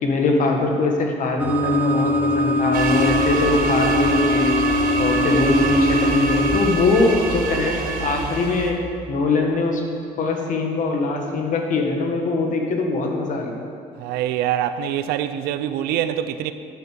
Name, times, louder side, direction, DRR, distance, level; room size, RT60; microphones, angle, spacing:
voice 1, 0.0-4.6 5.0-8.8 9.1-9.8 10.2-13.5, left 3 dB, 55° left, 1.7 m, -21 dB
sound 1, 1.4-6.7, left 1 dB, 10° right, 1.3 m, -21 dB
sound 2, 2.7-8.7, right 4 dB, 65° right, 1.3 m, -27 dB
voice 2, 14.0-16.5, right 11 dB, 85° right, 0.5 m, -24 dB
9.9 x 6.8 x 6.7 m
cardioid pair, 105°, 16 cm